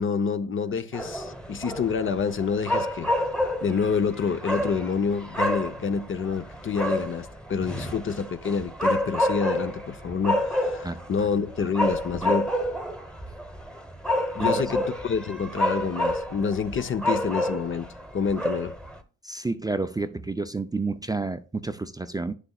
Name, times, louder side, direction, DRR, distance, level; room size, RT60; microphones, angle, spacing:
voice 1, 0.0-3.1 3.6-12.5 14.3-17.9 18.1-18.7, left 6 dB, 40° left, 0.8 m, -28 dB
sound 1, 0.9-19.0, left 1 dB, 5° left, 1.1 m, -29 dB
voice 2, 19.2-22.4, right 3 dB, 15° right, 0.5 m, -30 dB
9.7 x 6.8 x 2.4 m
cardioid pair, 90°, 30 cm